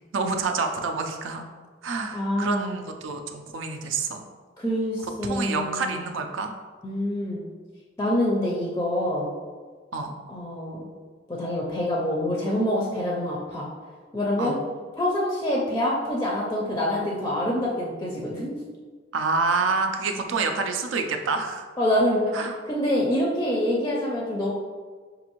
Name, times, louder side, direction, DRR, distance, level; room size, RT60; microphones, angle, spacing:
voice 1, 0.1-1.4 1.8-4.2 5.2-6.5 9.9-10.1 14.4-14.6 19.1-21.7 22.3-22.5, right 4 dB, 85° right, 5 dB, 0.4 m, -27 dB
voice 2, 2.1-2.7 4.6-6.0 6.8-7.4 8.0-9.3 10.3-10.8 11.3-13.7 14.1-14.6 15.0-18.5 21.8-22.3 22.7-24.5, left 1 dB, 15° left, -3 dB, 0.4 m, -26 dB
5.3 x 2.5 x 2.9 m, 1.5 s
head